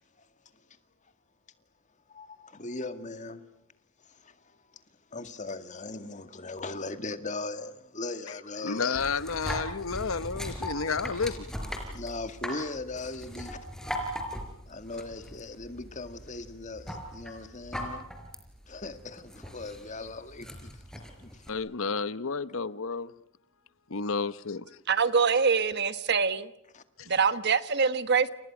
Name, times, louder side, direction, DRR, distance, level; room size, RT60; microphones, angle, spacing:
voice 1, 2.1-3.5 4.1-4.4 5.1-8.9 11.9-13.6 14.7-18.1 18.7-21.5 26.7-26.8, left 3 dB, 35° left, 2.1 m, -39 dB
voice 2, 8.6-11.4 21.5-23.1 23.9-24.8 27.0-27.1, left 5 dB, 70° left, 0.9 m, -31 dB
sound 1, 8.9-21.5, equal, 5° left, 4.4 m, -39 dB
voice 3, 24.9-26.5 27.1-28.3, right 5 dB, 55° right, 1.3 m, -24 dB
29.5 x 29.0 x 6.1 m
head